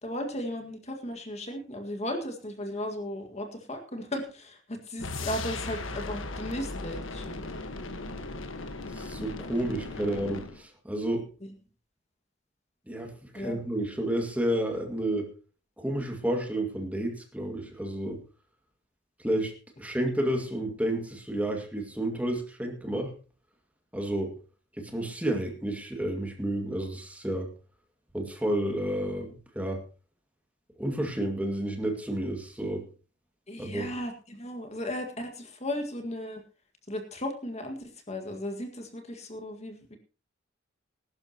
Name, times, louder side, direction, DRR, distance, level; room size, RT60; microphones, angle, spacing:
voice 1, 0.0-7.4 11.4-11.5 13.3-13.6 33.5-36.4 36.9-40.0, left 1 dB, 35° left, 5 dB, 1.9 m, -36 dB
sound 1, 5.0-10.6, left 2 dB, 85° left, 1.5 m, -37 dB
voice 2, 8.9-11.3 12.9-15.3 15.8-18.2 19.2-19.5 19.8-23.1 23.9-24.3 24.8-27.5 28.1-29.8 30.8-32.8 33.6-33.9, right 1 dB, 10° right, 2 dB, 2.2 m, -31 dB
20.0 x 12.0 x 3.0 m, 0.35 s
head